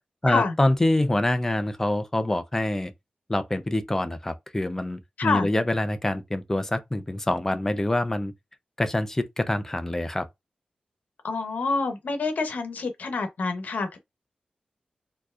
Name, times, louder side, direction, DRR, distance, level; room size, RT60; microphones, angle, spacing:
voice 1, 0.2-2.9 3.3-8.3 8.8-10.3, left 1 dB, 15° left, 0.6 m, -25 dB
voice 2, 11.2-14.0, left 4 dB, 85° left, 1.0 m, -27 dB
4.3 x 2.9 x 2.5 m
wide cardioid pair, 125°, 3 cm